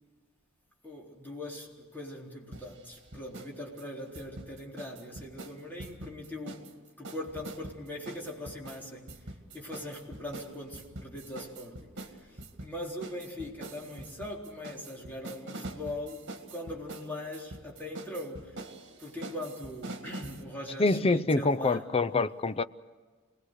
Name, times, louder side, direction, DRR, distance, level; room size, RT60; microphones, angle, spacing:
voice 1, 0.8-6.7 7.0-18.6 19.0-21.9, left 1 dB, 10° left, 3.9 m, -41 dB
sound 1, 2.5-3.5 3.8-6.7 7.0-20.4, right 2 dB, 60° right, 2.0 m, -44 dB
voice 2, 20.8-22.6, left 3 dB, 25° left, 0.6 m, -26 dB
27.5 x 20.5 x 6.5 m
head